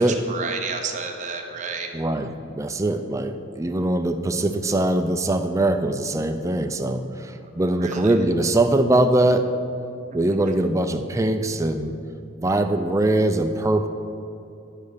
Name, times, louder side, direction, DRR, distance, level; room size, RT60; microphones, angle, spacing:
voice 1, 0.0-1.9 7.8-8.1, right 5 dB, 35° right, 3 dB, 0.8 m, -31 dB
voice 2, 1.9-9.5 10.1-11.9 12.4-13.9, right 1 dB, 15° right, 6 dB, 0.4 m, -22 dB
11.0 x 4.1 x 6.6 m, 2.9 s
head